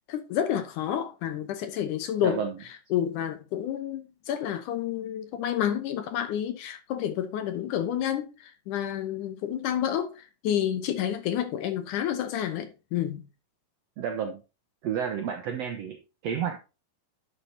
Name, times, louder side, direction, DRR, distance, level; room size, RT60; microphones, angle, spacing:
voice 1, 0.1-2.4 2.9-13.2, left 10 dB, 70° left, 2.2 m, -29 dB
voice 2, 2.2-2.6 14.0-14.4 14.8-16.0 16.2-16.6, right 7 dB, 75° right, 1.5 m, -30 dB
11.5 x 6.8 x 2.7 m
omnidirectional pair, 4.1 m